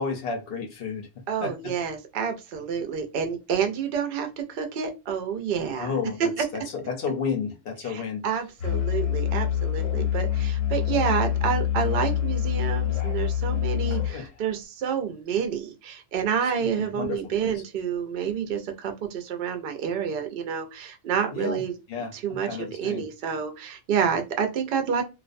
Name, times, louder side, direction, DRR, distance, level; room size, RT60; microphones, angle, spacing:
voice 1, 0.0-1.1 1.4-1.7 5.8-8.2 13.9-14.2 16.8-17.6 21.3-21.6 21.9-23.0, left 5 dB, 60° left, 2 dB, 0.7 m, -32 dB
voice 2, 1.3-5.9 6.2-6.6 7.8-21.8 22.1-25.0, right 7 dB, 60° right, 5 dB, 0.6 m, -28 dB
Musical instrument, 8.6-14.2, left 11 dB, 85° left, 1.2 m, -26 dB
2.5 x 2.1 x 2.4 m, 0.27 s
omnidirectional pair, 1.3 m